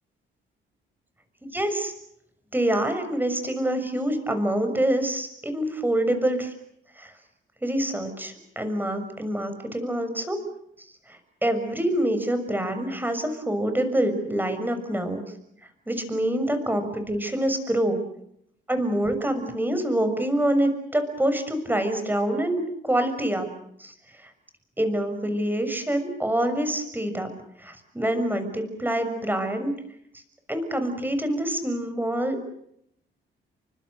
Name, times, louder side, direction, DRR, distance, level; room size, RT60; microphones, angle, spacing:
voice 1, 1.5-1.9 2.5-6.5 7.0-7.1 7.6-10.4 11.1-15.2 15.9-18.0 18.7-23.5 23.8-23.9 24.2-24.3 24.8-27.3 27.6-29.7 30.5-32.4, right 1 dB, 10° right, 8 dB, 6.4 m, -26 dB
29.5 x 25.0 x 6.6 m, 0.74 s
cardioid pair, 90°, 20 cm